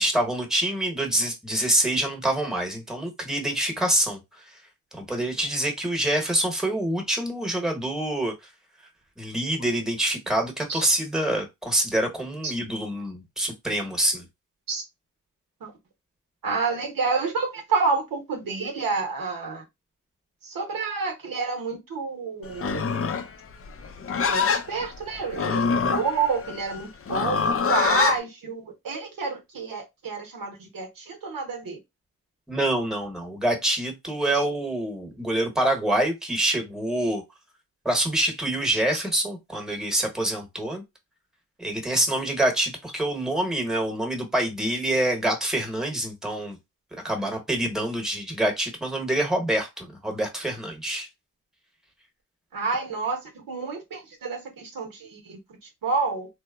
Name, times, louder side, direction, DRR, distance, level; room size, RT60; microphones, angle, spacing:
voice 1, 0.0-4.4 4.9-8.3 9.2-14.2 32.5-37.2 37.8-40.8 41.6-46.6 46.9-51.1, right 1 dB, ahead, 1.0 m, -26 dB
voice 2, 16.4-19.6 20.4-22.9 24.3-31.8 38.9-39.0 52.5-55.4 55.8-56.3, right 4 dB, 90° right, 0.8 m, -29 dB
Livestock farm animals working animals, 22.5-28.2, left 6 dB, 45° left, 0.4 m, -25 dB
2.9 x 2.0 x 2.3 m
cardioid pair, 50°, 33 cm